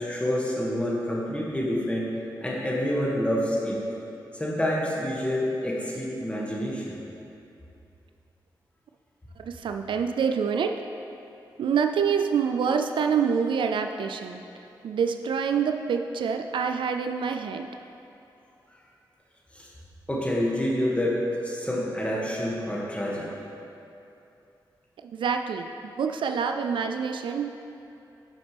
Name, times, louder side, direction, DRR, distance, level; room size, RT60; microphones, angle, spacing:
voice 1, 0.0-2.1 2.4-3.8 4.3-7.0 19.5-19.7 20.1-21.2 21.4-23.3, equal, 15° left, -4 dB, 2.0 m, -27 dB
voice 2, 9.5-10.7 11.6-14.4 14.8-17.7 25.1-25.7 26.0-27.5, right 6 dB, 75° right, 6 dB, 0.4 m, -26 dB
12.0 x 5.1 x 3.4 m, 2.8 s
cardioid pair, 50°, 8 cm